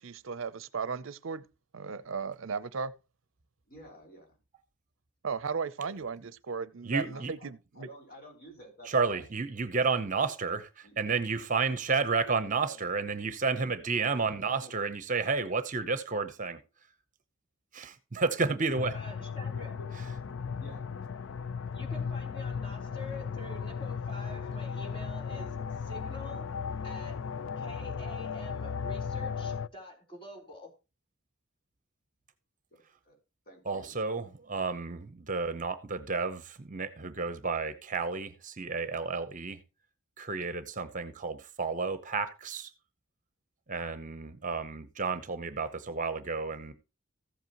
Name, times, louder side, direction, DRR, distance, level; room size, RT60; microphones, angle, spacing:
voice 1, 0.0-1.4 1.7-3.0 5.2-7.9, right 5 dB, 65° right, 0.6 m, -36 dB
voice 2, 3.7-4.4 5.8-5.9 6.9-7.5 7.7-9.3 10.8-11.0 12.2-12.8 13.9-14.0 14.6-14.7 19.5-19.9 20.6-20.9 32.7-33.2 33.5-33.9, right 1 dB, 45° left, 4.6 m, -51 dB
voice 3, 6.8-7.3 8.8-16.6 17.7-18.9 33.6-39.6 40.2-42.7 43.7-46.7, right 4 dB, 40° right, 0.9 m, -31 dB
sound 1, 18.8-29.7, left 6 dB, 65° left, 0.4 m, -36 dB
voice 4, 18.9-19.7 21.7-26.5 26.8-27.3 27.6-30.7, left 1 dB, 25° left, 3.6 m, -47 dB
14.5 x 8.1 x 3.0 m
head